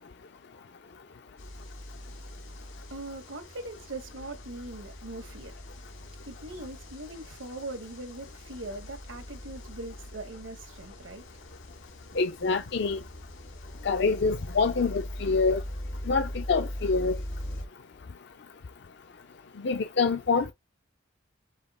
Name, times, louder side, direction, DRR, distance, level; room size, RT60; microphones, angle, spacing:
sound 1, 1.4-17.6, equal, 80° left, 1.8 m, -41 dB
voice 1, 2.9-5.5 6.2-11.4 12.1-12.2, right 2 dB, 80° right, 1.4 m, -41 dB
voice 2, 12.2-13.0 13.8-15.6 16.1-17.2 19.6-20.5, left 4 dB, 55° left, 0.4 m, -26 dB
5.6 x 2.3 x 4.2 m
head